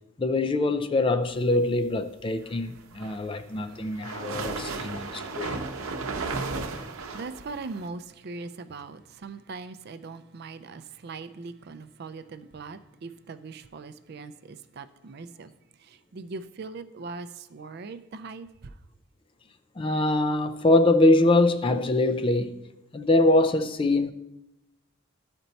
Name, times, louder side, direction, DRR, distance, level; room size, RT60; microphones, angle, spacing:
voice 1, 0.2-5.6 19.8-22.6 22.9-24.1, left 2 dB, 25° left, 0.4 m, -23 dB
sound 1, 2.8-7.9, right 3 dB, 90° right, 0.8 m, -34 dB
voice 2, 7.1-15.5 15.8-18.7, right 4 dB, 50° right, 0.4 m, -40 dB
12.5 x 4.4 x 4.0 m
head